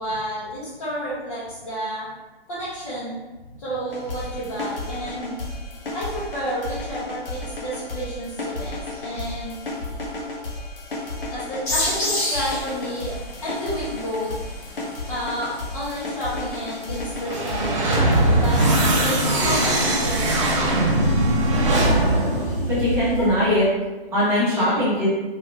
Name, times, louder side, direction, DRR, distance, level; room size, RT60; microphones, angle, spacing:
voice 1, 0.0-2.1 2.5-3.2 3.6-5.4 5.9-9.6 11.3-14.3 15.1-18.0 18.4-18.6 18.9-20.8 23.2-23.3 24.5-24.8, equal, 35° left, -10 dB, 1.0 m, -31 dB
sound 1, 3.9-20.5, left 2 dB, 60° left, 1.1 m, -33 dB
sound 2, 11.7-23.0, left 1 dB, 15° left, 0.7 m, -34 dB
sound 3, 17.2-23.5, right 1 dB, 30° right, 0.6 m, -20 dB
voice 2, 22.7-23.7 24.1-25.1, left 1 dB, 10° right, -9 dB, 1.0 m, -20 dB
3.7 x 3.0 x 3.2 m, 1.2 s
figure-of-eight pair, 140°, 31 cm